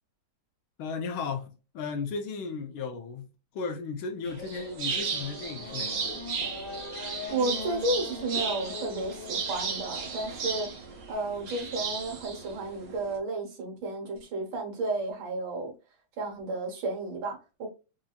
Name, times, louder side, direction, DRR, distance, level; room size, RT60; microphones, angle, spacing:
voice 1, 0.8-3.3 3.5-6.2, left 5 dB, 85° left, 1.6 m, -35 dB
sound 1, 4.2-13.2, right 5 dB, 55° right, 1.0 m, -35 dB
Race car auto racing / Accelerating revving vroom, 4.9-10.0, left 4 dB, 60° left, 1.6 m, -41 dB
voice 2, 7.3-10.7 11.1-15.7 16.2-17.7, right 2 dB, 75° right, 2.1 m, -32 dB
4.8 x 2.7 x 2.4 m
omnidirectional pair, 2.2 m